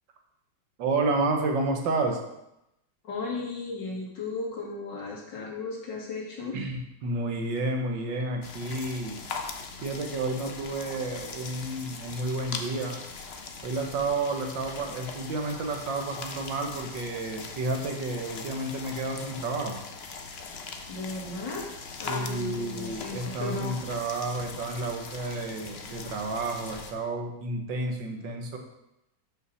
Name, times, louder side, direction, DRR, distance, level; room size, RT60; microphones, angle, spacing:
voice 1, 0.8-2.2 6.5-9.2 9.8-13.0 13.6-19.8 22.1-28.6, right 2 dB, 80° right, 3 dB, 1.9 m, -31 dB
voice 2, 3.0-6.6 20.9-21.6 22.0-23.8, left 3 dB, 70° left, -2 dB, 2.6 m, -35 dB
sound 1, 8.4-26.9, left 4 dB, 50° left, 0.7 m, -41 dB
6.7 x 5.6 x 6.2 m, 0.86 s
omnidirectional pair, 2.0 m